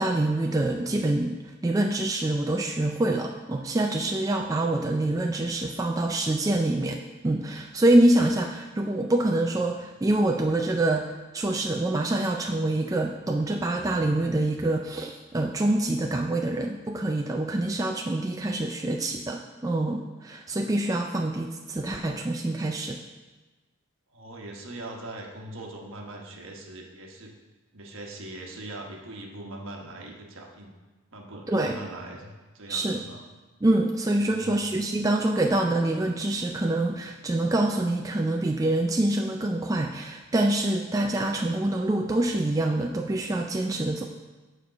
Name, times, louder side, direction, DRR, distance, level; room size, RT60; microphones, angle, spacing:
voice 1, 0.0-7.0 7.2-23.0 31.5-31.8 32.7-33.0 33.6-44.0, right 1 dB, 15° right, 2 dB, 0.3 m, -25 dB
voice 2, 24.1-27.3 27.7-30.7 31.1-33.2 34.2-34.7, right 1 dB, 65° right, 1 dB, 1.2 m, -41 dB
7.2 x 4.5 x 6.6 m, 1.2 s
head